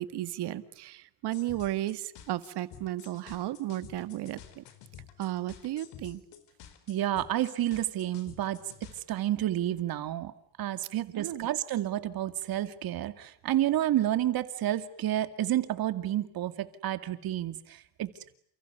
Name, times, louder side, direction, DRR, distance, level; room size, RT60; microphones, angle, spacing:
voice 1, 0.0-4.6 5.2-6.2 11.1-11.5, right 14 dB, 75° right, 12 dB, 1.9 m, -34 dB
sound 1, 1.3-9.0, left 9 dB, 85° left, 4.6 m, -51 dB
voice 2, 6.9-8.6 9.1-10.3 10.6-18.1, right 13 dB, 60° right, 11 dB, 2.4 m, -30 dB
29.5 x 28.5 x 6.9 m, 0.65 s
cardioid pair, 160°, 41 cm